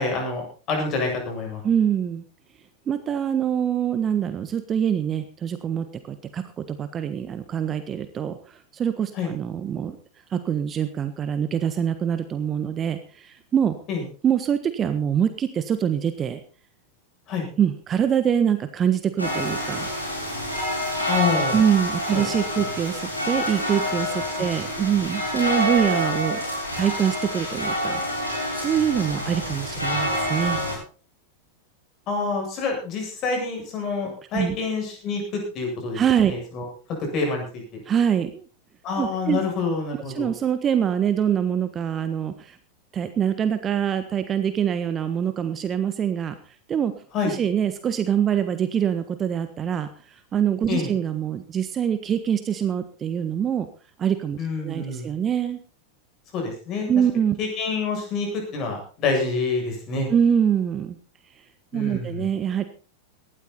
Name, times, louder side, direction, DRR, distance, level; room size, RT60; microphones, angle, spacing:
voice 1, 0.0-1.6 9.1-9.3 13.9-14.0 17.3-17.5 21.1-21.6 22.1-22.2 24.4-24.5 32.1-36.0 36.3-36.7 37.0-37.8 38.8-40.3 47.1-47.3 50.7-50.9 54.4-55.1 56.3-56.9 57.4-60.1 61.7-62.2, left 4 dB, 35° left, 2 dB, 7.9 m, -27 dB
voice 2, 1.6-2.2 2.9-10.0 10.3-13.8 14.2-16.4 17.6-19.9 21.5-26.4 26.8-28.0 28.5-30.6 34.3-34.6 35.9-36.3 37.9-38.5 39.0-39.4 40.1-42.6 42.9-46.3 46.7-46.9 47.2-49.9 50.3-53.7 54.0-55.6 56.9-57.4 60.1-61.0 61.7-62.6, right 8 dB, 25° right, 10 dB, 1.3 m, -24 dB
sound 1, 19.2-30.8, equal, 85° left, 7.4 m, -27 dB
18.5 x 12.5 x 4.3 m, 0.38 s
figure-of-eight pair, 90°, 0 cm